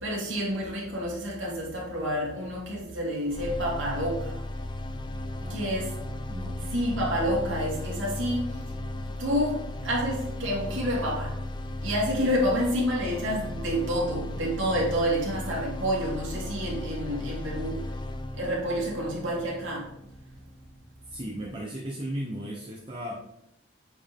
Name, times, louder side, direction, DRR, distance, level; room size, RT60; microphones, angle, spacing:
voice 1, 0.0-4.4 5.5-5.9 6.7-8.5 9.2-11.3 11.8-17.8 18.3-19.9, equal, 80° right, -4 dB, 2.9 m, -29 dB
sound 1, 3.3-21.3, left 1 dB, 25° left, 0.4 m, -36 dB
voice 2, 5.4-6.6 12.2-12.3 21.1-23.2, right 1 dB, 25° right, -3 dB, 0.9 m, -36 dB
8.3 x 4.7 x 3.6 m, 0.80 s
head